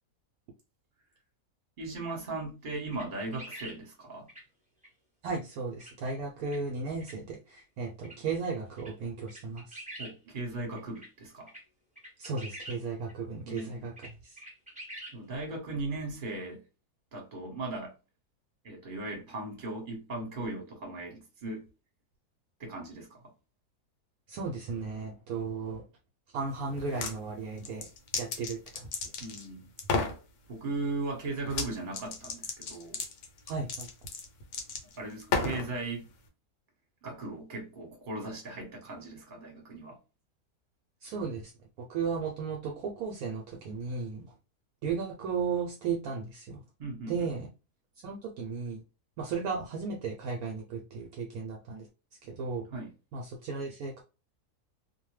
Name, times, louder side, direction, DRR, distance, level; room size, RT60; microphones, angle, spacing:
voice 1, 1.8-4.3 10.0-11.5 13.4-13.9 15.1-16.6 17.1-17.9 18.6-21.7 22.6-23.2 29.2-29.7 30.5-33.0 35.0-36.1 37.0-40.0 46.8-47.3 52.7-52.9, right 2 dB, 35° right, 1.1 m, -38 dB
sound 1, 2.9-3.8 4.3-4.4 4.8-4.9 5.8-5.9 6.5-6.6 7.0-7.1 8.0-8.2 8.4-8.5 8.8-8.9 9.3-10.1 10.8-11.1 11.5-11.6 12.0-12.8 13.1-13.2 13.5-13.6 14.0-14.1 14.4-15.2, right 1 dB, 5° right, 0.7 m, -45 dB
voice 2, 5.2-9.8 12.2-13.9 14.2-14.4 24.3-25.8 26.3-27.9 28.2-28.9 33.5-33.9 41.0-41.5 41.9-44.3 44.8-46.6 47.1-47.5 48.0-48.8 49.2-51.9 52.2-52.6 53.1-54.0, right 5 dB, 70° right, 1.0 m, -35 dB
sound 2, 26.8-27.2 27.6-29.5 29.8-30.2 31.5-31.7 31.9-35.7, left 4 dB, 75° left, 1.2 m, -33 dB
2.6 x 2.1 x 3.1 m
omnidirectional pair, 1.7 m